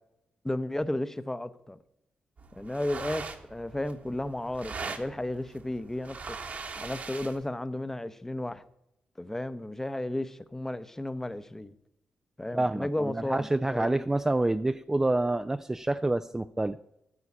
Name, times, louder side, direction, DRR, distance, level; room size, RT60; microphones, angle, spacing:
voice 1, 0.4-1.8 2.5-6.4 6.8-8.6 9.2-11.7 12.4-14.1, left 1 dB, 15° left, 0.8 m, -33 dB
sound 1, 2.4-7.5, right 4 dB, 55° right, 1.6 m, -41 dB
voice 2, 12.5-16.8, right 2 dB, 15° right, 0.4 m, -27 dB
14.0 x 4.8 x 8.6 m
cardioid pair, 75°, 3 cm